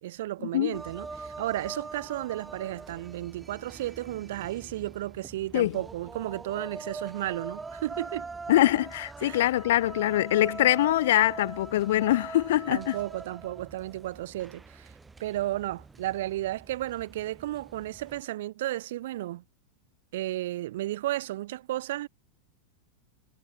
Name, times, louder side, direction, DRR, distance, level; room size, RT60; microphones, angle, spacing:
voice 1, 0.0-8.3 9.2-9.5 12.7-14.9 15.2-19.4 20.1-22.1, right 15 dB, 55° right, 1.3 m, -33 dB
sound 1, 0.7-18.2, right 4 dB, 10° right, 2.8 m, -43 dB
voice 2, 8.5-12.9, left 14 dB, 55° left, 0.3 m, -23 dB
figure-of-eight pair, 90°, 0 cm